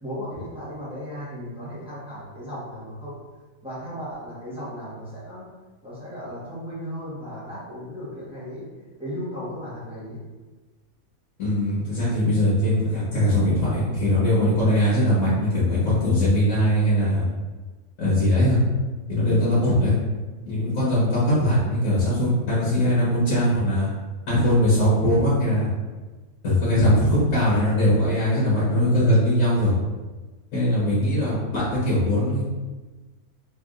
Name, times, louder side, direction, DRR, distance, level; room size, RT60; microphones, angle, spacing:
voice 1, 0.0-3.2 3.6-5.5 5.8-8.6 9.0-10.2, equal, 5° right, -10 dB, 1.1 m, -35 dB
voice 2, 11.4-17.2 18.0-18.6 19.1-19.9 20.4-23.9 24.3-25.7 26.4-29.7 30.5-32.4, left 1 dB, 70° left, -9 dB, 1.6 m, -21 dB
3.6 x 3.4 x 2.5 m, 1.3 s
omnidirectional pair, 1.6 m